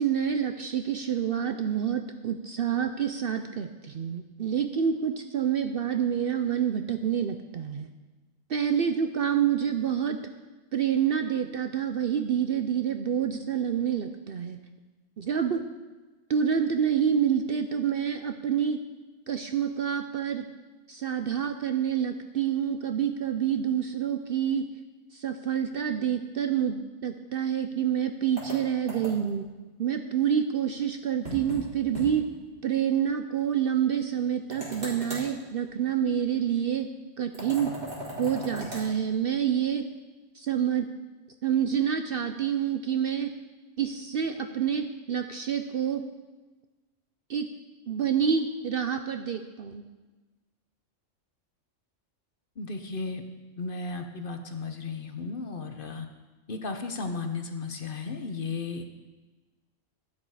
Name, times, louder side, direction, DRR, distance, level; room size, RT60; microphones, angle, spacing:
voice 1, 0.0-7.9 8.5-10.2 10.7-14.6 15.2-15.6 16.3-18.8 19.3-20.5 20.9-24.7 25.1-29.4 29.8-32.3 32.6-36.9 37.2-37.7 38.2-39.9 40.3-40.9 41.4-43.3 43.8-46.0 47.3-47.5 47.9-49.8, right 8 dB, 60° right, 7 dB, 0.7 m, -27 dB
sound 1, 28.4-29.4 31.2-31.6 31.9-32.1 32.4-32.5 34.5-35.3 37.3-38.9, equal, 40° right, 3.8 m, -38 dB
voice 2, 52.6-53.2 53.6-56.1 56.5-58.8, left 4 dB, 45° left, 6 dB, 0.9 m, -34 dB
12.0 x 10.5 x 4.8 m, 1.2 s
omnidirectional pair, 1.4 m